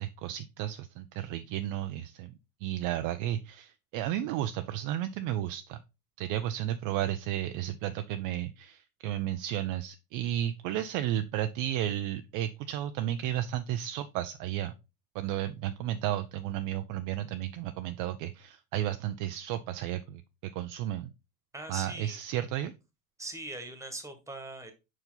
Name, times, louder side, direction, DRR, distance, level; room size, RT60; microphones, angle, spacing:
voice 1, 0.0-2.3 2.6-5.8 6.2-14.7 15.1-21.1 21.7-22.7, right 12 dB, 45° right, 10 dB, 0.5 m, -33 dB
voice 2, 21.5-22.2 23.2-24.7, right 2 dB, 5° right, 7 dB, 1.5 m, -41 dB
5.3 x 4.6 x 3.9 m, 0.27 s
hypercardioid pair, 90°, 48 cm